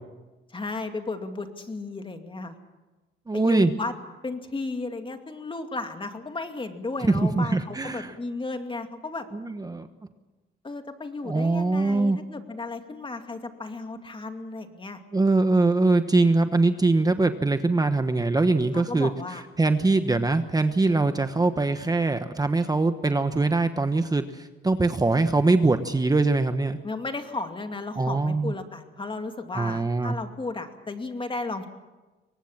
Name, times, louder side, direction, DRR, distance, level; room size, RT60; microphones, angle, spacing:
voice 1, 0.5-2.6 3.3-3.9 4.2-9.3 10.6-15.0 18.7-19.4 26.8-31.7, left 3 dB, 25° left, 6 dB, 2.4 m, -34 dB
voice 2, 3.3-3.7 7.0-8.1 9.3-9.9 11.2-12.2 15.1-26.8 28.0-28.5 29.5-30.1, right 3 dB, 20° right, 9 dB, 1.1 m, -23 dB
23.5 x 19.0 x 7.3 m, 1.2 s
cardioid pair, 90°, 20 cm